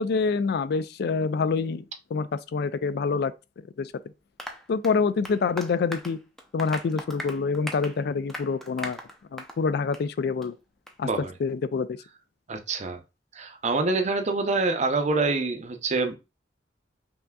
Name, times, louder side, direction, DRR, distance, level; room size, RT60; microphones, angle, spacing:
voice 1, 0.0-3.3 3.8-3.9 4.7-6.2 6.5-9.0 9.3-10.6 11.0-11.1 11.4-12.0, left 4 dB, 60° left, 0.3 m, -26 dB
Applause, 4.4-9.6 9.9-10.1 10.4-10.5 10.9-11.0, equal, ahead, 0.5 m, -39 dB
voice 2, 12.5-13.0 13.3-16.2, right 3 dB, 40° right, 0.6 m, -26 dB
5.6 x 2.6 x 2.3 m
head